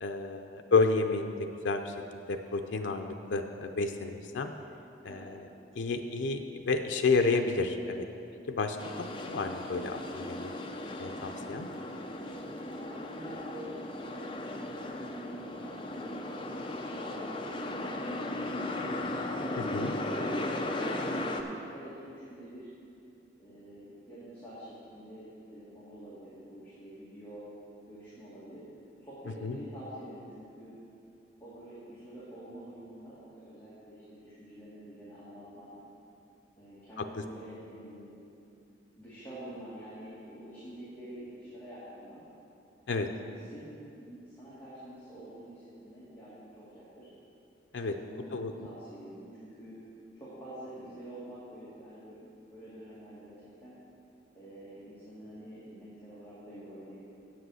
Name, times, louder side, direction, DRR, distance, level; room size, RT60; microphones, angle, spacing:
voice 1, 0.0-1.9 2.3-4.5 5.0-5.4 5.8-8.1 8.5-10.5 11.0-11.7 19.6-19.9 29.4-29.5 42.9-43.1 47.7-48.0 48.3-48.5, left 3 dB, 85° left, 5 dB, 0.5 m, -30 dB
sound 1, 8.8-21.4, left 1 dB, 25° left, 0.5 m, -36 dB
voice 2, 12.7-16.2 17.0-18.9 19.6-22.7 23.4-27.4 27.9-28.6 29.0-30.8 31.4-35.8 36.6-38.2 39.0-42.2 43.0-47.1 47.8-49.8 50.1-53.8 54.3-57.0, right 1 dB, 10° left, -11 dB, 2.0 m, -47 dB
8.2 x 7.7 x 6.3 m, 2.7 s
head